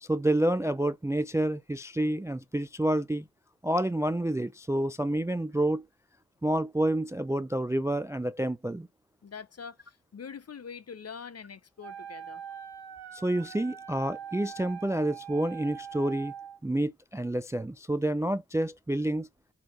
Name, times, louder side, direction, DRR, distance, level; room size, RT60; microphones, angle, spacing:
voice 1, 0.0-3.3 3.6-5.9 6.4-8.9 13.1-16.3 16.6-19.3, right 1 dB, 10° right, 0.3 m, -28 dB
voice 2, 9.2-12.4, left 6 dB, 40° left, 0.6 m, -44 dB
Wind instrument woodwind instrument, 11.8-16.6, right 8 dB, 80° right, 1.2 m, -43 dB
4.4 x 2.9 x 3.6 m
cardioid pair, 50°, 39 cm